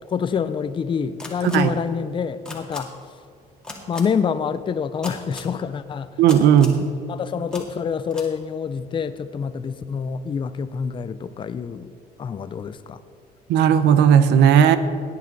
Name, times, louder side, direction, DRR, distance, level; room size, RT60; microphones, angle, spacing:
voice 1, 0.1-2.9 3.9-6.1 7.1-11.9 12.2-13.0, left 6 dB, 30° left, 12 dB, 0.5 m, -26 dB
sound 1, 1.2-1.6 2.4-2.8 3.6-4.0 5.0-5.5 6.3-6.8 7.5-7.6 8.1-8.3, left 2 dB, 5° left, 2.2 m, -35 dB
voice 2, 6.2-6.8 13.5-14.8, right 9 dB, 85° right, 12 dB, 0.8 m, -15 dB
16.5 x 9.6 x 4.0 m, 2.3 s
cardioid pair, 110°, 17 cm